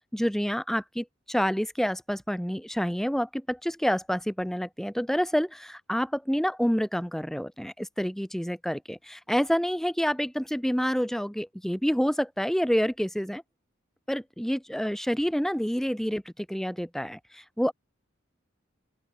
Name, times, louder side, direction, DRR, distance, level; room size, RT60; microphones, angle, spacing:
voice 1, 0.1-13.4 14.1-16.2 16.5-17.2 17.6-17.7, equal, ahead, 0.9 m, -28 dB
open air
head